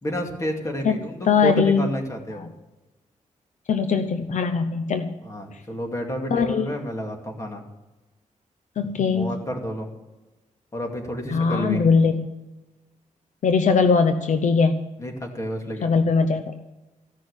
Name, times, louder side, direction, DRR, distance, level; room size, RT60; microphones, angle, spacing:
voice 1, 0.0-2.5 5.2-7.6 9.1-9.9 10.7-11.8 15.0-16.0, equal, 25° left, 2 dB, 2.4 m, -30 dB
voice 2, 1.2-1.9 2.3-2.5 3.7-5.1 6.3-6.7 8.8-9.4 11.3-12.3 13.4-14.8 15.8-16.5, left 5 dB, 70° left, 8 dB, 0.8 m, -20 dB
15.5 x 6.4 x 9.7 m, 1.1 s
wide cardioid pair, 150°, 13 cm